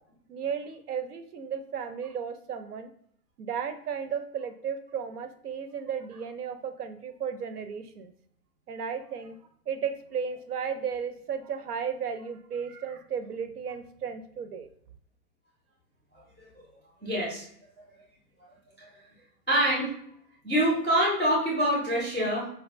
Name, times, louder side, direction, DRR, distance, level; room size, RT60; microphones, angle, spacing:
voice 1, 0.3-2.9 3.4-8.1 8.7-9.4 9.7-14.7, right 7 dB, 75° right, 10 dB, 0.6 m, -34 dB
voice 2, 16.1-16.5 17.0-17.4 18.8-19.0 19.5-19.9 20.4-22.5, right 1 dB, 5° left, -8 dB, 0.4 m, -26 dB
4.7 x 2.2 x 2.5 m, 0.67 s
figure-of-eight pair, 125°, 48 cm